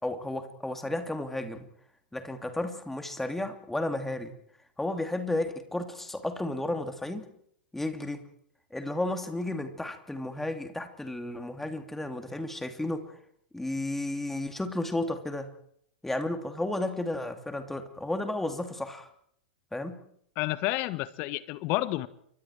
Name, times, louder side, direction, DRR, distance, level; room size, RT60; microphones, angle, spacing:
voice 1, 0.0-1.6 2.1-4.3 4.8-7.3 7.7-8.2 8.7-13.1 13.5-15.5 16.0-19.1 19.7-20.0, left 1 dB, 5° left, 6 dB, 2.8 m, -33 dB
voice 2, 20.4-22.1, left 18 dB, 45° left, 15 dB, 1.3 m, -30 dB
29.5 x 25.0 x 4.7 m, 0.69 s
figure-of-eight pair, 105°, 5 cm